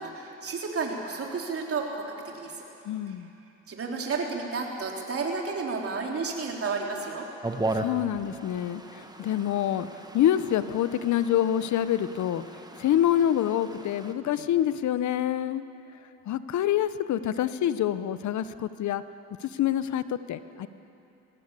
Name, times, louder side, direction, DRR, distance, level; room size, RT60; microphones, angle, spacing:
voice 1, 0.0-2.1 2.3-2.5 3.1-3.2 3.7-7.3, right 4 dB, 50° right, 0 dB, 3.7 m, -31 dB
voice 2, 2.8-3.3 7.7-9.9 10.1-12.4 12.8-15.6 16.3-19.0 19.4-20.7, left 11 dB, 70° left, 13 dB, 0.9 m, -26 dB
sound 1, 7.4-14.1, right 2 dB, 15° right, 1.3 m, -37 dB
20.5 x 18.0 x 8.4 m, 2.9 s
cardioid pair, 90°, 30 cm